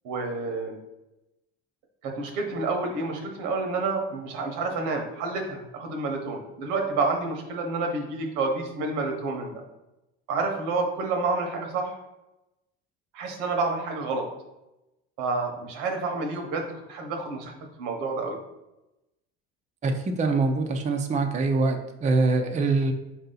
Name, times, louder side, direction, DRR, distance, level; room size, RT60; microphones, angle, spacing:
voice 1, 0.0-0.8 2.0-9.6 10.3-11.9 13.1-14.3 15.2-17.5 17.8-18.4, right 3 dB, 80° right, 3 dB, 1.1 m, -29 dB
voice 2, 19.8-22.9, right 3 dB, 25° right, 5 dB, 0.5 m, -24 dB
4.7 x 2.8 x 3.8 m, 0.95 s
supercardioid pair, 95°, 31 cm